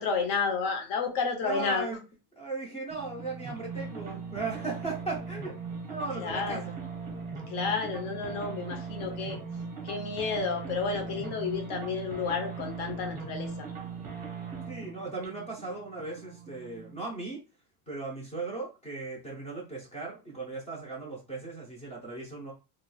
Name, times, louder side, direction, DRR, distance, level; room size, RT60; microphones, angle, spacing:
voice 1, 0.0-2.0 6.2-6.7 7.5-9.4 9.8-13.7, left 5 dB, 45° left, 5 dB, 0.8 m, -31 dB
voice 2, 1.4-2.0 2.4-5.5 5.9-6.7 14.7-17.4 17.9-22.5, right 3 dB, 15° left, -3 dB, 0.5 m, -37 dB
sound 1, 2.9-17.0, right 5 dB, 20° right, 0.7 m, -39 dB
3.0 x 2.9 x 2.2 m, 0.31 s
cardioid pair, 175°, 46 cm